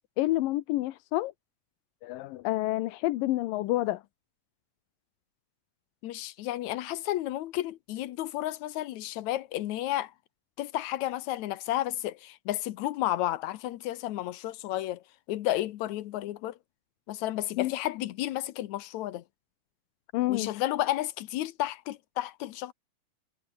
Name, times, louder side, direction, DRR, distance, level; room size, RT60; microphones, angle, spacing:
voice 1, 0.2-1.3 2.0-4.0 17.6-17.7 20.1-20.5, left 17 dB, 90° left, 2.5 m, -28 dB
voice 2, 6.0-10.1 10.6-15.0 15.3-16.6 17.1-19.2 20.3-22.7, left 14 dB, 70° left, 2.0 m, -32 dB
omnidirectional pair, 3.9 m